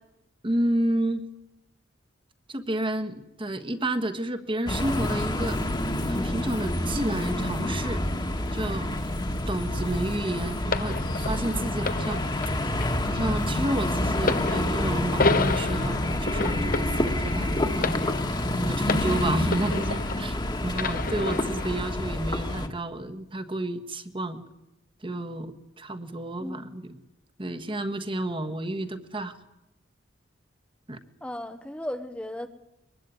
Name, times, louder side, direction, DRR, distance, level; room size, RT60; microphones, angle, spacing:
voice 1, 0.4-1.3 2.5-5.6 6.1-8.0 8.5-9.0 9.5-12.2 13.1-17.9 18.6-20.4 20.6-24.4 25.0-27.0 27.4-29.3 30.9-31.0, right 1 dB, 25° right, 8 dB, 1.5 m, -30 dB
sound 1, 4.7-22.7, left 1 dB, 25° left, 1.7 m, -28 dB
sound 2, 10.7-20.4 20.7-21.8 22.6-22.7, left 3 dB, 50° left, 1.0 m, -31 dB
voice 2, 31.2-32.5, left 1 dB, 5° left, 7 dB, 0.9 m, -36 dB
23.5 x 20.5 x 9.4 m, 0.91 s
head